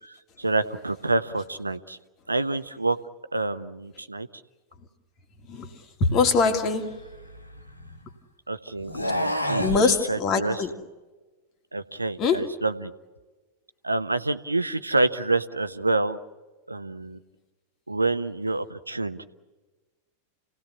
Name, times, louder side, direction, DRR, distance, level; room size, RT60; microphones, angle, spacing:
voice 1, 0.0-2.0 2.3-3.0 3.3-4.3 8.5-9.7 10.1-10.6 11.7-12.9 13.8-16.2 16.7-17.2 17.9-19.3, right 2 dB, 80° right, 11 dB, 1.0 m, -27 dB
voice 2, 6.0-7.0 9.6-10.8 12.2-12.5, left 4 dB, 35° left, 6 dB, 2.6 m, -23 dB
sound 1, 6.6-8.1 8.8-9.8, equal, 90° left, 1.8 m, -29 dB
29.5 x 18.5 x 8.5 m, 1.2 s
figure-of-eight pair, 90°, 0 cm